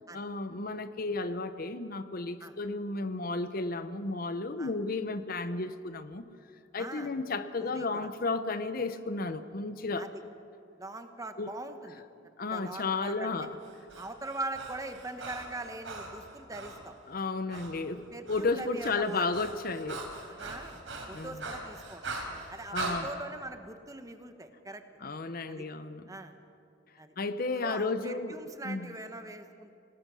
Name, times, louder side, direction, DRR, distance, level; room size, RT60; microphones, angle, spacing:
voice 1, 0.1-6.3 6.7-10.1 11.4-11.5 12.4-13.6 17.1-20.1 21.1-21.4 22.7-23.1 25.0-26.1 27.2-28.4 28.6-28.9, left 3 dB, 50° left, 11 dB, 0.8 m, -33 dB
voice 2, 6.8-7.1 7.6-8.1 10.0-10.1 10.8-12.0 12.5-13.3 14.0-16.9 17.5-17.6 18.1-19.3 20.3-20.8 21.1-22.1 22.5-24.8 25.5-25.7 26.1-26.4 27.0-27.1 27.5-29.8, right 2 dB, 15° right, 7 dB, 1.2 m, -42 dB
Breathing, 13.6-16.8 17.5-17.7 18.0-23.0, right 3 dB, 75° right, 4.1 m, -41 dB
26.5 x 18.5 x 6.2 m, 2.5 s
head